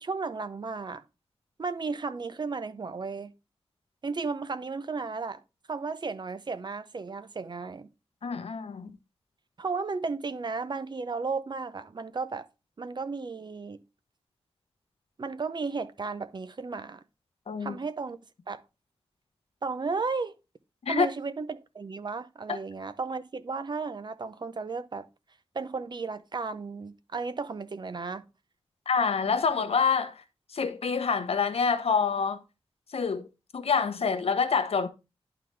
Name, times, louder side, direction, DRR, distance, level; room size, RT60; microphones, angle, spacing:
voice 1, 0.0-1.0 1.6-3.3 4.0-5.4 5.7-7.9 9.6-12.5 12.8-13.8 15.2-17.0 17.6-18.2 18.5-18.6 19.6-20.3 20.9-25.1 25.5-28.2, right 4 dB, 45° right, 0.6 m, -34 dB
voice 2, 8.2-9.0 17.5-17.8 20.8-21.1 22.5-22.6 28.9-30.2 30.5-32.4 32.9-33.3 33.5-34.9, left 5 dB, 80° left, 0.9 m, -26 dB
11.0 x 3.9 x 3.2 m
wide cardioid pair, 85°, 10 cm